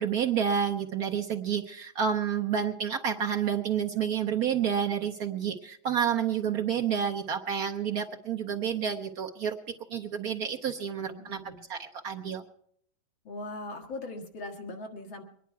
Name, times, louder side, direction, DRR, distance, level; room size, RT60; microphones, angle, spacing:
voice 1, 0.0-12.4, right 8 dB, 60° right, 4 dB, 1.0 m, -29 dB
voice 2, 11.0-11.6 13.2-15.2, left 2 dB, 75° left, 2 dB, 2.4 m, -40 dB
23.0 x 10.5 x 4.5 m, 0.67 s
omnidirectional pair, 2.2 m